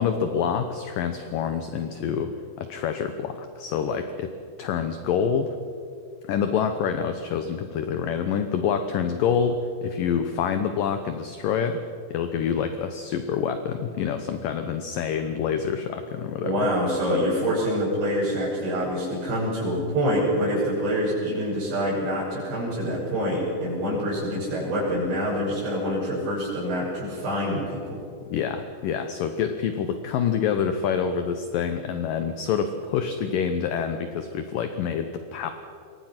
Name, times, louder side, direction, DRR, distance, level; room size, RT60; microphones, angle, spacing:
voice 1, 0.0-2.3 2.6-4.3 4.6-5.6 6.3-11.8 12.1-16.5 28.3-35.5, left 7 dB, 70° left, 8 dB, 2.1 m, -27 dB
voice 2, 16.4-28.0, equal, 80° right, -10 dB, 9.0 m, -26 dB
27.0 x 22.0 x 6.0 m, 2.5 s
omnidirectional pair, 5.1 m